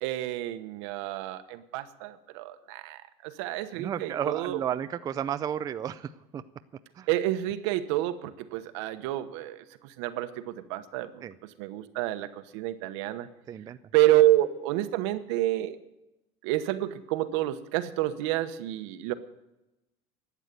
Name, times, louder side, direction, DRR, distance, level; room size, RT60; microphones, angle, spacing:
voice 1, 0.0-4.6 7.1-13.3 13.9-15.8 16.4-19.1, right 14 dB, 75° right, 11 dB, 1.1 m, -29 dB
voice 2, 3.7-6.4 7.0-7.1 11.2-11.3 13.5-13.8, right 9 dB, 25° right, 11 dB, 0.4 m, -33 dB
12.5 x 8.2 x 9.1 m, 0.95 s
supercardioid pair, 140°, 15 cm